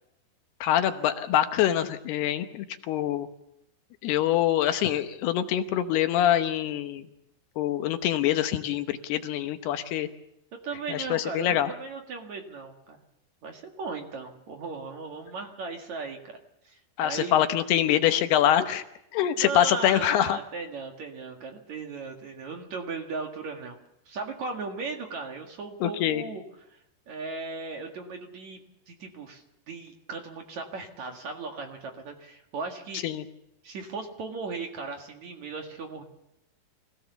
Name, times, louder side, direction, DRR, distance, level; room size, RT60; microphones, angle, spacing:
voice 1, 0.6-3.3 4.0-7.0 7.6-10.1 10.9-11.7 17.0-18.8 19.1-20.4 25.8-26.2 33.0-33.2, left 11 dB, 75° left, 8 dB, 2.9 m, -25 dB
voice 2, 10.6-13.0 13.4-16.3 16.6-17.3 19.4-23.8 24.1-26.4 26.7-26.8 27.1-28.6 28.9-33.0 33.6-36.0, right 4 dB, 50° right, 3 dB, 2.7 m, -37 dB
25.5 x 17.0 x 7.0 m, 0.82 s
omnidirectional pair, 4.9 m